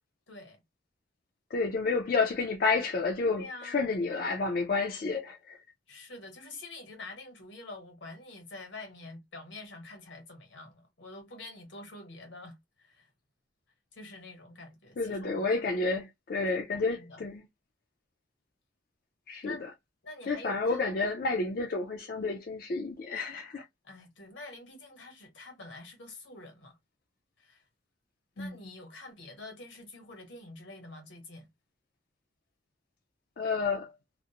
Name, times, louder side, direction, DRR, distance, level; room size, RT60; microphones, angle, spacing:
voice 1, 0.3-0.6 3.3-3.7 5.9-13.1 13.9-15.8 16.7-17.2 19.4-19.6 20.0-20.9 23.8-26.8 27.4-27.6 28.4-31.5, left 2 dB, 85° left, 1.1 m, -47 dB
voice 2, 1.5-5.6 15.0-17.4 19.3-19.6 20.3-23.6 28.4-28.5 33.4-33.9, left 3 dB, 50° left, 0.4 m, -30 dB
2.4 x 2.0 x 2.8 m
head